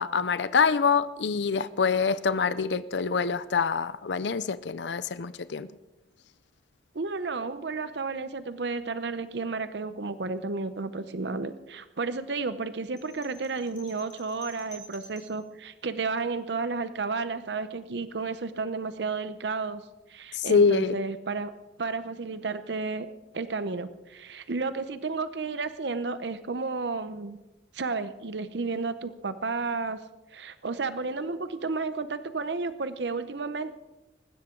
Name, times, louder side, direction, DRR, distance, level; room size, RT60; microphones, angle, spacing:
voice 1, 0.0-5.7 20.3-20.9, left 5 dB, 75° left, 15 dB, 0.6 m, -25 dB
voice 2, 6.9-19.8 20.1-21.5 21.8-23.1 23.3-27.4 27.7-30.0 30.3-33.7, right 4 dB, 70° right, 12 dB, 0.7 m, -32 dB
sound 1, 13.0-15.4, equal, 40° left, 4.0 m, -50 dB
20.0 x 16.0 x 3.8 m, 1.0 s
head